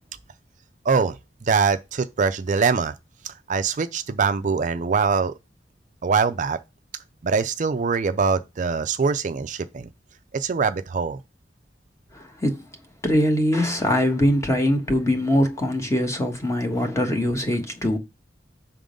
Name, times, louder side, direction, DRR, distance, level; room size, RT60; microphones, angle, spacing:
voice 1, 0.8-2.9 3.2-5.3 6.0-6.6 7.2-9.9 10.3-11.2, right 5 dB, 45° right, 0.4 m, -23 dB
voice 2, 12.1-12.6 13.0-18.0, left 1 dB, 15° left, 1.2 m, -22 dB
5.9 x 3.7 x 5.1 m
head